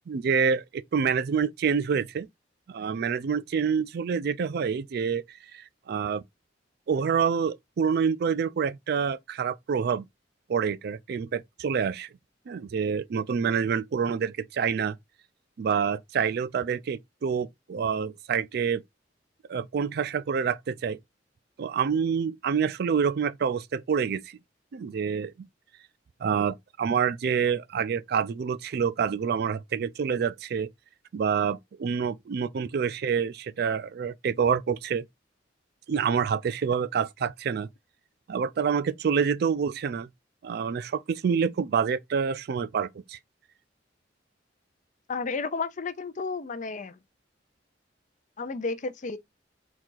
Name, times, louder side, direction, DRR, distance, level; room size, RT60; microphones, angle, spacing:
voice 1, 0.1-2.3 2.7-5.2 5.5-6.2 6.9-10.0 10.5-12.1 12.5-15.0 15.6-18.8 19.5-21.0 21.6-24.2 24.7-25.3 26.2-30.7 31.1-35.0 35.9-37.7 38.3-40.1 40.4-43.2, right 6 dB, 60° right, 0.4 m, -27 dB
voice 2, 45.1-47.0 48.4-49.2, left 4 dB, 45° left, 0.5 m, -32 dB
4.0 x 2.4 x 4.5 m
head